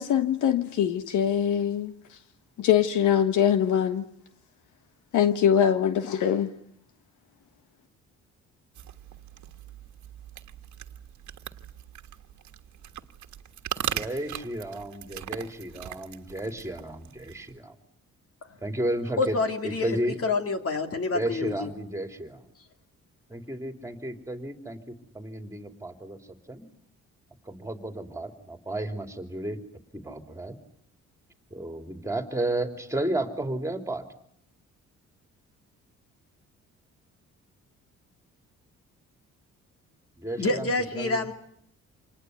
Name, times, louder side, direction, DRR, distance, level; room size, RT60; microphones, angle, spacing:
voice 1, 0.0-1.9 2.6-4.0 5.1-6.5, left 9 dB, 80° left, 11 dB, 1.4 m, -23 dB
sound 1, 8.7-17.6, right 11 dB, 70° right, 1.6 m, -39 dB
voice 2, 13.9-17.7 18.6-19.4 19.6-20.2 21.1-22.4 23.3-26.2 26.5-26.7 27.4-29.6 29.9-30.6 31.5-34.0 40.2-40.7 40.9-41.3, right 1 dB, 10° right, 7 dB, 3.2 m, -33 dB
voice 3, 19.2-21.7 40.4-41.3, left 3 dB, 50° left, 6 dB, 3.0 m, -27 dB
27.0 x 20.0 x 9.6 m, 0.69 s
cardioid pair, 90°, 30 cm